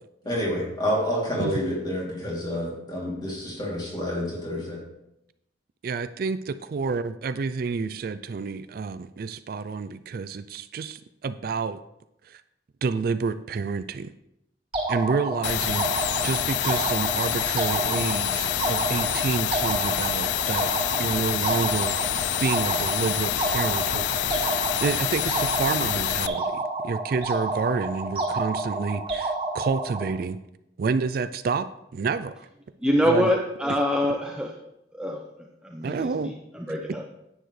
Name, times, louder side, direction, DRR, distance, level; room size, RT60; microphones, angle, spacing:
voice 1, 0.2-4.8, equal, 25° left, -4 dB, 2.9 m, -28 dB
voice 2, 5.8-11.8 12.2-12.4 12.8-14.1 14.9-15.9 16.2-20.7 21.0-22.0 22.4-24.5 24.8-30.4 30.8-32.5 33.0-33.3 35.8-36.3, right 4 dB, 55° right, 13 dB, 0.3 m, -29 dB
sound 1, 14.7-30.1, right 2 dB, 30° right, 2.4 m, -30 dB
sound 2, 15.4-26.3, left 12 dB, 75° left, 0.3 m, -27 dB
voice 3, 32.8-34.5 35.0-35.2 35.7-36.1 36.7-37.0, equal, 5° right, -1 dB, 0.7 m, -24 dB
10.0 x 9.1 x 3.2 m, 0.84 s
head